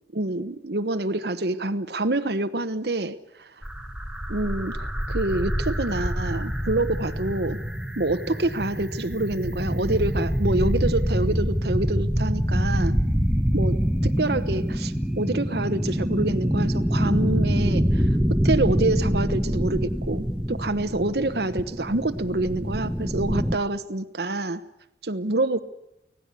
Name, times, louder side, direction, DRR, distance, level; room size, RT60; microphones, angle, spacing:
voice 1, 0.1-3.5 4.3-7.6 8.0-13.0 13.5-24.6 25.0-25.6, right 2 dB, 65° right, 9 dB, 1.1 m, -27 dB
sound 1, 3.6-23.6, equal, 5° right, 1.2 m, -25 dB
24.5 x 17.5 x 8.3 m, 0.87 s
head